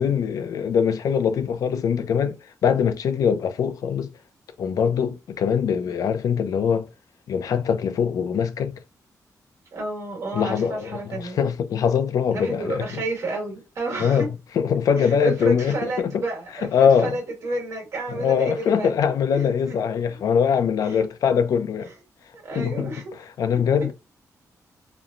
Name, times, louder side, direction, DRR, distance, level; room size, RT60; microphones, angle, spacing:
voice 1, 0.0-4.1 4.6-6.9 7.3-8.7 10.3-13.0 14.0-14.3 14.6-16.2 16.7-17.2 18.1-21.9 22.6-22.9 23.4-23.9, left 7 dB, 70° left, 0.4 m, -22 dB
voice 2, 9.7-11.4 12.3-14.3 15.0-18.9 19.3-19.8 20.1-20.2 20.8-21.1 21.8-21.9 22.3-23.1 23.8-23.9, right 2 dB, 55° right, 1.4 m, -31 dB
3.0 x 2.0 x 2.4 m
wide cardioid pair, 170°, 6 cm